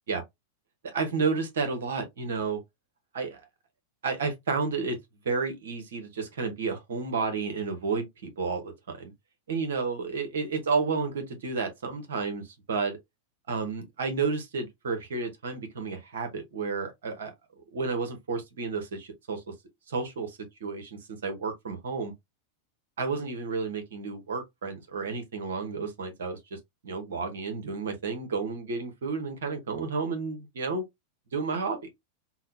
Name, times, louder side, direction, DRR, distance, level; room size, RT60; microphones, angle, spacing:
voice 1, 0.8-2.6 3.1-3.4 4.0-5.0 5.2-9.1 9.5-13.0 13.5-17.3 17.7-19.4 19.9-22.1 23.0-30.8 31.3-31.9, right 4 dB, 60° right, 0.9 m, -31 dB
3.8 x 2.1 x 2.6 m
figure-of-eight pair, 90°, 0 cm